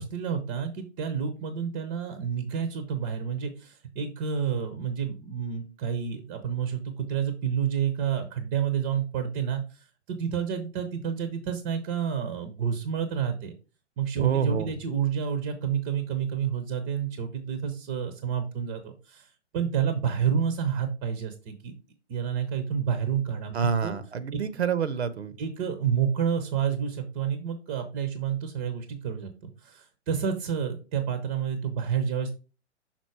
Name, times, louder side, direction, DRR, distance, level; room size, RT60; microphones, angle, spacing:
voice 1, 0.0-9.6 10.1-13.5 14.0-19.3 19.5-21.7 22.1-23.5 23.8-23.9 24.3-24.4 25.4-29.3 29.6-32.4, right 7 dB, 20° right, 8 dB, 0.6 m, -29 dB
voice 2, 14.2-14.7 23.5-25.4, right 7 dB, 65° right, 14 dB, 0.7 m, -27 dB
5.9 x 3.9 x 4.6 m, 0.33 s
figure-of-eight pair, 120°, 35 cm